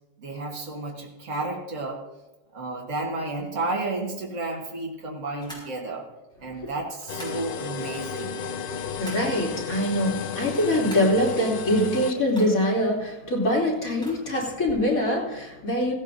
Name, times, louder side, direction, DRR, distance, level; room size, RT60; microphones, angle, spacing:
voice 1, 0.2-2.0 2.5-6.1 6.4-8.4, right 2 dB, 65° right, -1 dB, 2.0 m, -32 dB
sound 1, 5.4-5.7 7.0-7.5 8.5-9.4 10.4-11.2 12.3-12.8 13.9-14.6, equal, 5° left, 5.5 m, -44 dB
sound 2, 7.1-12.1, left 6 dB, 60° left, 0.6 m, -33 dB
voice 2, 8.7-15.9, left 1 dB, 80° left, -4 dB, 3.6 m, -24 dB
16.5 x 16.0 x 2.7 m, 1.0 s
omnidirectional pair, 1.5 m